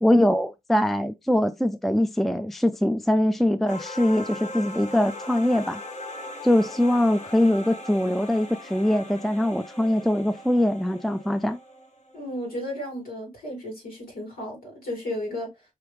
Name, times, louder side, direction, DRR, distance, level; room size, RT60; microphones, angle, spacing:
voice 1, 0.0-5.8 6.4-11.6, left 1 dB, ahead, 0.4 m, -22 dB
sound 1, 3.7-12.3, left 1 dB, 50° left, 1.1 m, -39 dB
voice 2, 12.1-15.5, left 1 dB, 90° left, 2.7 m, -33 dB
4.7 x 3.0 x 3.3 m
cardioid pair, 65°, 15 cm